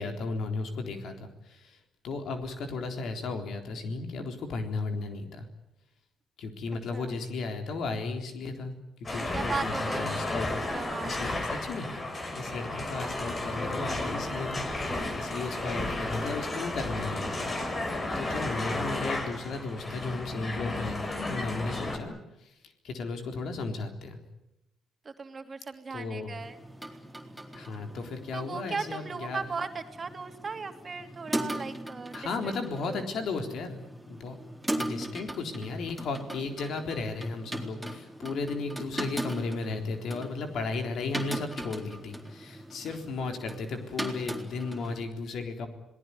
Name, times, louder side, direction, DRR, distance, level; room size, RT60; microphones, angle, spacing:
voice 1, 0.0-1.8 2.0-5.5 6.4-8.7 9.0-10.8 11.0-11.9 12.3-17.9 18.1-22.5 22.8-24.2 25.9-26.3 27.5-29.4 32.1-33.8 34.1-34.3 34.8-45.7, left 3 dB, 70° left, 5 dB, 3.8 m, -35 dB
sound 1, 9.0-22.0, left 2 dB, 35° left, 5.5 m, -33 dB
voice 2, 9.2-10.2 10.7-11.3 17.9-18.4 21.6-21.9 25.0-26.6 28.3-32.2 32.4-32.5 32.9-33.1, right 4 dB, 40° right, 6 dB, 2.7 m, -37 dB
sound 2, 26.4-45.1, right 1 dB, 5° right, 4.0 m, -39 dB
27.0 x 18.5 x 9.7 m, 0.90 s
supercardioid pair, 70°, 0 cm